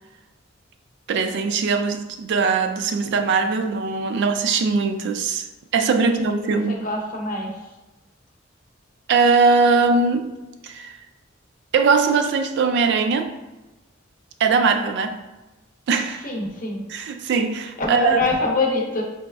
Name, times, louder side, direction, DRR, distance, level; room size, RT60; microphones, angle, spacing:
voice 1, 1.1-5.5 5.7-6.9 9.1-10.3 10.6-11.0 11.7-13.3 14.4-15.2 15.9-16.3 16.9-18.2, right 4 dB, 60° right, 7 dB, 0.3 m, -20 dB
voice 2, 6.4-7.5 16.2-16.8 17.8-19.0, left 3 dB, 45° left, 0 dB, 0.7 m, -25 dB
4.0 x 3.3 x 2.3 m, 1.1 s
head